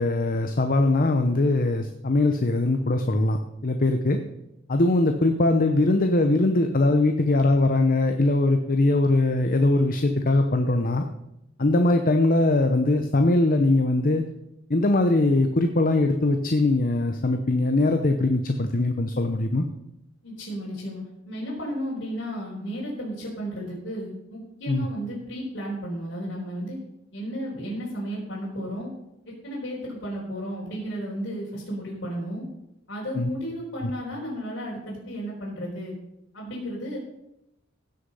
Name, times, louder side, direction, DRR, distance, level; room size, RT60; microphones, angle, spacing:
voice 1, 0.0-4.2 4.7-11.0 11.6-14.2 14.7-19.7 24.7-24.9 33.1-33.3 33.8-33.9, left 2 dB, 45° left, 5 dB, 0.8 m, -21 dB
voice 2, 20.2-26.8 27.1-28.9 29.2-32.4 32.9-35.9 36.3-37.0, equal, 60° left, -7 dB, 4.4 m, -33 dB
16.0 x 6.6 x 5.5 m, 0.87 s
head